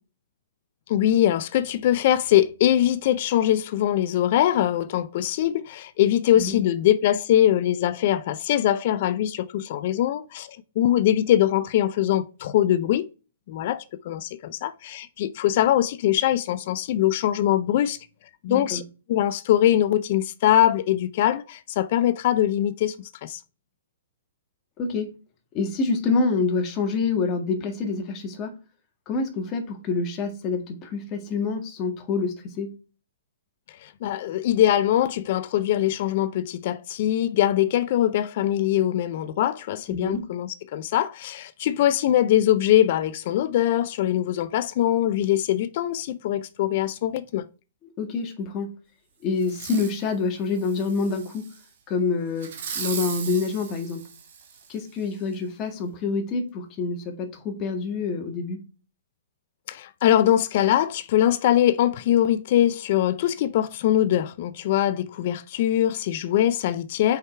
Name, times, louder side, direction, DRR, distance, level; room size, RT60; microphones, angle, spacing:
voice 1, 0.9-13.1 13.5-18.0 18.4-18.8 19.1-23.4 33.8-47.5 59.7-67.2, left 12 dB, 50° left, 0.4 m, -22 dB
voice 2, 18.5-18.8 24.8-25.2 25.5-28.6 29.1-32.7 39.9-40.2 48.0-48.7 49.2-51.5 51.9-52.5 52.8-54.0 54.7-58.6, left 4 dB, 30° left, 1.8 m, -27 dB
Fireworks, 49.4-50.0 50.5-51.6 52.4-54.8 55.3-55.4, right 7 dB, 60° right, 2.1 m, -37 dB
6.6 x 4.9 x 4.5 m
hypercardioid pair, 130°, 0 cm